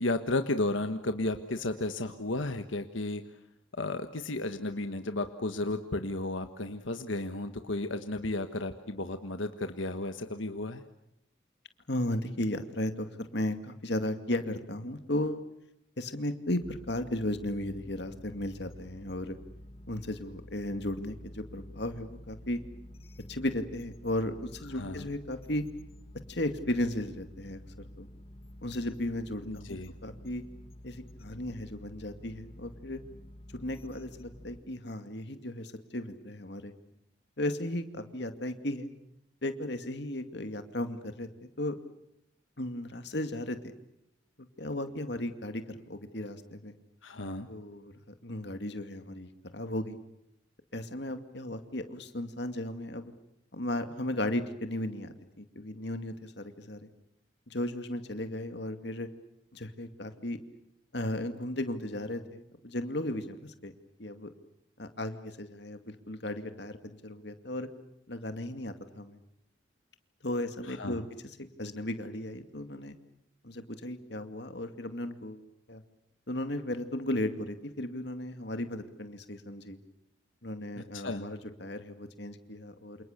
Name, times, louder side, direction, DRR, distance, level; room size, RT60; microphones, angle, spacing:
voice 1, 0.0-3.2 3.8-10.8 24.7-25.1 29.4-29.9 47.0-47.5 70.7-71.0 80.8-81.3, left 2 dB, 90° left, 8 dB, 1.5 m, -33 dB
voice 2, 11.9-15.4 16.0-19.4 19.9-22.6 23.3-25.6 26.3-28.1 28.6-30.4 30.8-33.0 33.5-36.7 37.4-38.9 39.4-41.3 41.6-41.8 42.6-43.7 44.6-46.7 47.5-50.0 50.7-53.1 53.5-56.9 57.5-59.1 59.5-60.4 60.9-63.7 64.0-64.3 64.8-66.8 67.0-67.7 68.1-69.2 70.2-73.0 73.4-75.4 75.7-75.8 76.3-79.8 80.4-83.0, left 1 dB, 65° left, 8 dB, 2.3 m, -35 dB
sound 1, 16.6-34.6, left 1 dB, 30° left, 1.4 m, -50 dB
28.5 x 28.5 x 6.7 m, 0.80 s
head